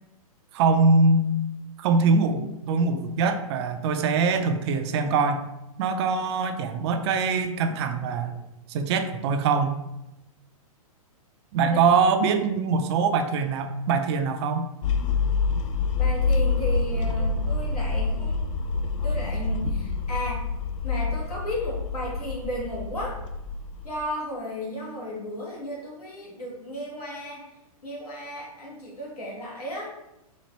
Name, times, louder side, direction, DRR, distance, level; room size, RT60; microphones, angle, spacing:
voice 1, 0.5-1.3 1.8-5.4 5.8-8.4 8.7-9.7 11.5-14.7, right 4 dB, 45° right, 8 dB, 0.4 m, -23 dB
sound 1, 14.8-24.0, left 4 dB, 60° left, 0.4 m, -27 dB
voice 2, 16.0-18.5 19.0-20.5 20.8-23.2 23.8-27.4 27.8-29.9, equal, 90° left, -4 dB, 1.5 m, -34 dB
4.2 x 2.5 x 3.0 m, 0.91 s
hypercardioid pair, 115°, 19 cm